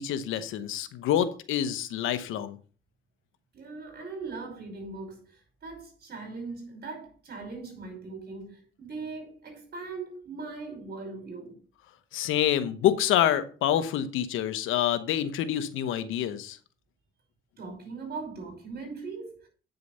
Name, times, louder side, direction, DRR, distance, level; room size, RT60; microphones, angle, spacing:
voice 1, 0.0-2.6 12.1-16.6, left 11 dB, 90° left, 1.0 m, -27 dB
voice 2, 3.5-11.6 17.6-19.5, right 4 dB, 55° right, 5.3 m, -40 dB
9.1 x 6.7 x 5.5 m
cardioid pair, 90°, 20 cm